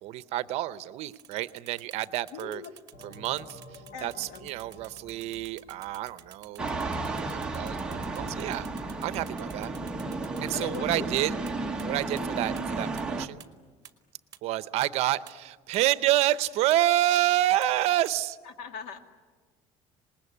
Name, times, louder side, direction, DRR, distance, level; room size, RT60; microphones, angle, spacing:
voice 1, 0.0-2.6 3.0-6.7 7.1-8.7 9.0-9.7 10.4-11.3 11.8-13.4 14.4-18.4, right 14 dB, 60° right, 15 dB, 0.8 m, -28 dB
sound 1, 1.1-11.5 11.8-11.9 12.2-12.3 12.6-12.7 13.0-13.1 13.4-13.5 13.8-13.9 14.3-14.4 14.8-14.9 15.3-15.4 15.7-15.8 16.2-16.3 16.7-16.8 17.2-17.3 17.6-17.7 18.1-18.2, right 10 dB, 30° right, 1.7 m, -50 dB
voice 2, 2.3-2.7 3.9-4.5 10.5-11.1 12.2-12.3 18.6-19.0, left 5 dB, 65° left, 6 dB, 2.2 m, -40 dB
sound 2, 2.9-7.3, equal, 25° left, 1.9 m, -51 dB
sound 3, 6.6-13.3, right 3 dB, 5° right, 1.2 m, -33 dB
26.5 x 20.5 x 9.7 m, 1.5 s
cardioid pair, 160°, 12 cm